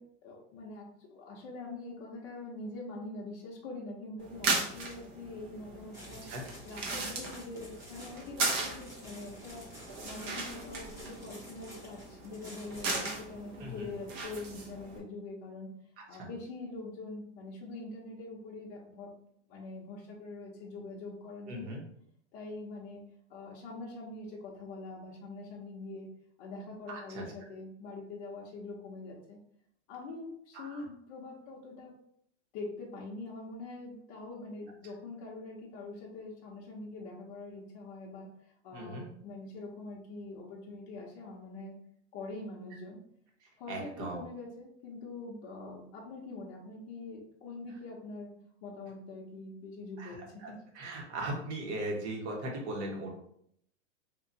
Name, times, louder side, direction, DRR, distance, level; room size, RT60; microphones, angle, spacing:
voice 1, 0.0-6.3 6.6-9.6 10.0-15.7 16.1-19.1 19.5-21.8 22.3-23.0 23.3-26.1 26.4-29.4 29.9-31.9 32.5-41.7 42.1-43.0 43.6-48.3 48.6-50.6, left 2 dB, 40° left, -3 dB, 0.7 m, -44 dB
sound 1, 4.2-15.0, right 3 dB, 35° right, 0.9 m, -37 dB
sound 2, 5.9-13.1, equal, 10° right, 0.9 m, -52 dB
voice 2, 21.5-21.8 26.9-27.2 30.5-30.8 38.7-39.1 43.7-44.2 50.0-50.2 50.4-53.1, right 1 dB, 70° right, -1 dB, 1.4 m, -38 dB
2.9 x 2.7 x 3.9 m, 0.69 s
supercardioid pair, 150°, 35 cm